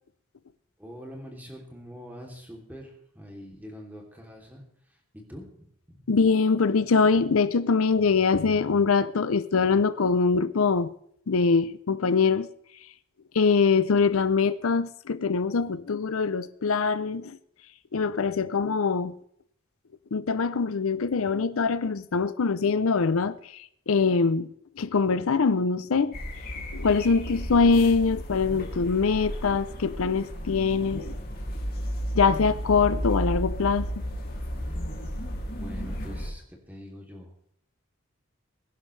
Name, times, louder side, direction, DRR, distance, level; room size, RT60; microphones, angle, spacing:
voice 1, 0.8-5.6 5.9-6.0 35.6-37.3, equal, 10° right, 2.9 m, -44 dB
voice 2, 6.1-10.9 11.3-12.5 13.3-17.4 17.9-19.1 20.1-26.1 26.7-31.1 32.1-33.9, left 4 dB, 80° left, 0.6 m, -23 dB
sound 1, 26.1-36.3, equal, 45° left, 2.6 m, -33 dB
21.5 x 11.0 x 3.3 m
head